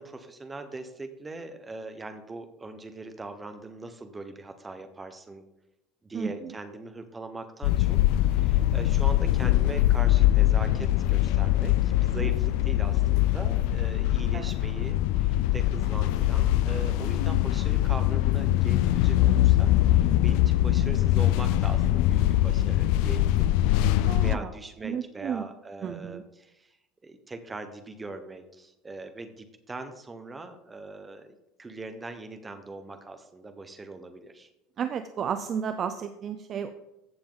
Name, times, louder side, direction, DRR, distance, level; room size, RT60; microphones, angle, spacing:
voice 1, 0.0-5.4 6.0-23.6 24.2-26.8 27.0-34.5, right 2 dB, 10° right, 7 dB, 1.0 m, -41 dB
sound 1, 7.6-24.4, left 14 dB, 65° left, 0.4 m, -23 dB
voice 2, 24.1-24.5 24.8-25.4 25.8-26.2 34.8-36.7, right 7 dB, 30° right, 9 dB, 0.5 m, -32 dB
15.0 x 7.1 x 3.9 m, 0.89 s
cardioid pair, 155°, 0 cm